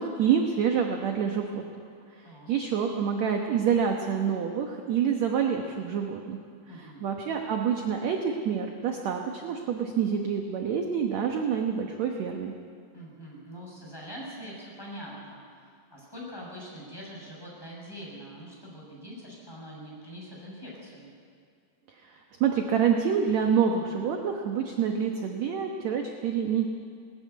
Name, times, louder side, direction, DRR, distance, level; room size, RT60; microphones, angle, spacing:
voice 1, 0.0-1.6 2.2-6.4 6.8-12.5 22.0-26.7, right 7 dB, 65° right, 3 dB, 1.8 m, -27 dB
voice 2, 6.7-7.0 12.9-21.1 22.1-22.2, equal, 5° left, -5 dB, 6.6 m, -43 dB
20.0 x 14.0 x 9.5 m, 2.2 s
omnidirectional pair, 4.4 m